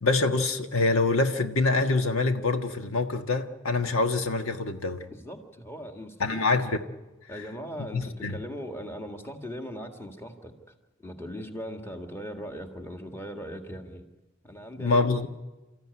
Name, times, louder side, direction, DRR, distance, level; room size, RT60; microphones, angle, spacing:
voice 1, 0.0-5.0 6.2-6.8 7.9-8.3 14.8-15.3, left 3 dB, 80° left, 6 dB, 1.5 m, -25 dB
voice 2, 5.1-6.4 7.3-10.5 11.0-14.0 14.4-15.0, equal, 10° left, 4 dB, 1.9 m, -39 dB
29.5 x 14.5 x 9.7 m, 1.1 s
head